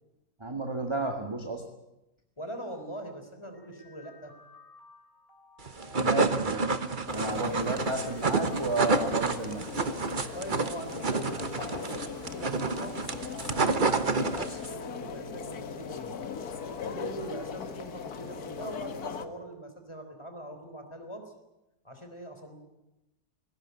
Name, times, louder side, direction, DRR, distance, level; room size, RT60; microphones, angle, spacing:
voice 1, 0.4-1.6 6.0-6.8 7.1-9.6, right 3 dB, 15° right, 3 dB, 1.7 m, -32 dB
voice 2, 2.4-4.3 10.3-13.0 13.5-16.2 16.8-21.3 21.8-22.6, right 1 dB, 15° left, 6 dB, 3.7 m, -42 dB
sound 1, 3.5-19.5, equal, 30° left, 3.8 m, -52 dB
sound 2, 5.7-14.7, right 3 dB, 30° right, 1.1 m, -29 dB
sound 3, 7.1-19.3, left 6 dB, 60° left, 1.7 m, -39 dB
20.5 x 17.5 x 9.5 m, 0.94 s
omnidirectional pair, 1.9 m